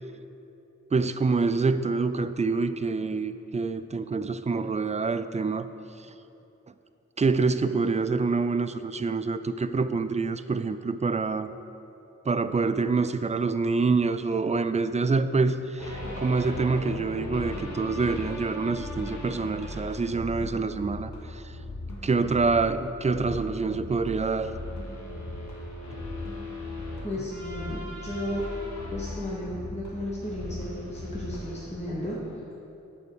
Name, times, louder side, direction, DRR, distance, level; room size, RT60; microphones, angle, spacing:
voice 1, 0.9-5.7 7.2-11.5 12.3-21.4 22.0-24.5, right 4 dB, 25° right, 11 dB, 0.3 m, -26 dB
sound 1, 15.8-31.7, left 1 dB, 75° left, 1.5 m, -38 dB
voice 2, 27.0-28.4 28.9-32.2, left 1 dB, 20° left, -6 dB, 1.3 m, -34 dB
9.2 x 4.5 x 6.7 m, 2.9 s
wide cardioid pair, 70°, 29 cm